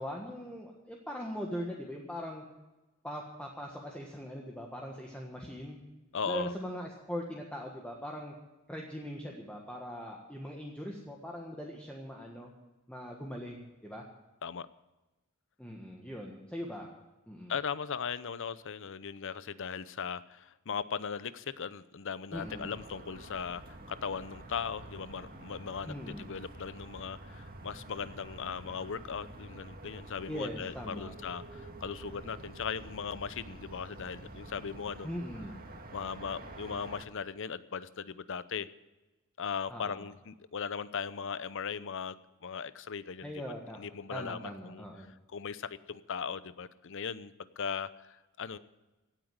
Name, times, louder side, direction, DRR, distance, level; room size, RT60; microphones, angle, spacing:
voice 1, 0.0-2.4 3.0-5.8 6.3-8.3 8.7-12.5 12.9-14.0 15.6-16.9 17.3-17.5 22.3-22.7 25.8-26.3 30.3-31.1 35.0-35.6 39.7-40.1 43.2-43.8 44.1-45.1, equal, 5° left, -1 dB, 1.5 m, -41 dB
voice 2, 6.1-6.5 14.4-14.7 17.5-35.2 35.9-38.7 39.4-43.3 43.8-45.1 45.3-48.6, left 6 dB, 60° left, 15 dB, 0.7 m, -38 dB
sound 1, 22.3-37.1, right 2 dB, 45° right, 1.8 m, -48 dB
17.0 x 8.9 x 8.1 m, 1.1 s
head